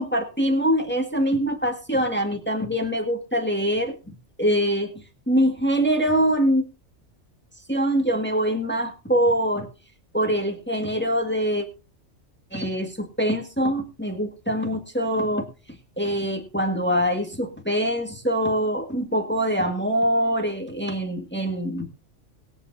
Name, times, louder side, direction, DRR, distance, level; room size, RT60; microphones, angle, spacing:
voice 1, 0.0-3.9 4.4-4.9 5.3-6.6 7.7-9.7 10.1-11.6 12.5-15.5 16.0-22.1, equal, 10° left, 3 dB, 1.8 m, -24 dB
21.5 x 8.5 x 2.7 m, 0.30 s
omnidirectional pair, 1.3 m